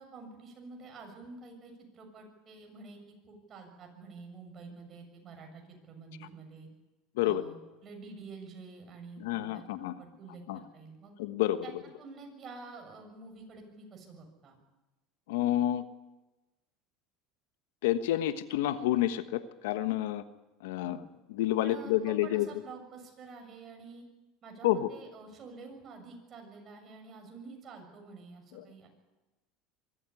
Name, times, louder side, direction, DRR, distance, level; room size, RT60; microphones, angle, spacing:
voice 1, 0.0-3.0 3.3-6.7 7.2-7.6 7.8-11.1 11.6-11.7 12.0-14.6 20.8-21.0 21.6-24.0 24.4-28.9, right 4 dB, 35° right, 3 dB, 7.1 m, -48 dB
voice 2, 9.2-9.9 10.5-10.6 11.2-11.7 15.3-15.8 17.8-20.2 20.6-21.0 21.3-22.5 24.6-24.9 28.5-28.6, left 13 dB, 85° left, 11 dB, 1.3 m, -29 dB
23.5 x 14.0 x 9.8 m, 1.1 s
supercardioid pair, 120°, 0 cm